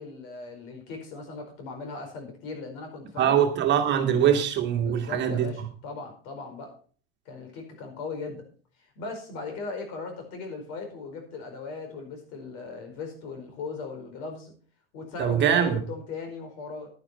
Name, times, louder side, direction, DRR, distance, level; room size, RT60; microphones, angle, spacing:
voice 1, 0.0-3.3 4.8-6.7 7.2-8.4 9.0-14.5 14.9-16.9, left 4 dB, 55° left, 4.8 m, -38 dB
voice 2, 3.2-5.7 15.2-15.8, right 9 dB, 35° right, 1.9 m, -23 dB
11.0 x 9.9 x 4.4 m
hypercardioid pair, 105°, 30 cm